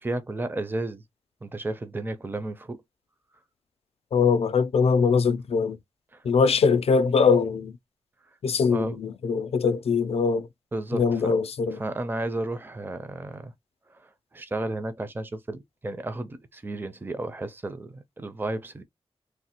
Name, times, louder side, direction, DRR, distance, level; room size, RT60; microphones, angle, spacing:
voice 1, 0.0-1.0 1.4-2.8 6.1-6.2 8.7-9.0 10.7-11.3 11.7-13.5 13.9-18.8, right 2 dB, 20° right, 0.5 m, -33 dB
voice 2, 4.1-5.8 6.2-7.8 8.4-10.5 10.9-11.8, left 5 dB, 80° left, 0.4 m, -22 dB
3.1 x 2.1 x 2.8 m
wide cardioid pair, 100°, 10 cm